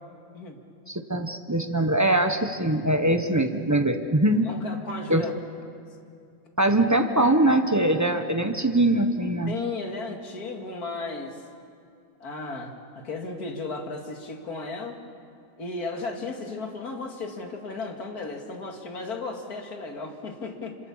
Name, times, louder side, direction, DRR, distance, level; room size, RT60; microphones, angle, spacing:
voice 1, 0.9-4.5 5.1-5.2 6.6-9.5, right 1 dB, 20° right, 6 dB, 0.4 m, -22 dB
voice 2, 4.4-5.3 5.6-5.7 9.5-11.4 12.2-15.0 15.6-20.8, left 3 dB, 50° left, 3 dB, 2.5 m, -35 dB
27.5 x 26.0 x 7.3 m, 2.4 s
omnidirectional pair, 2.2 m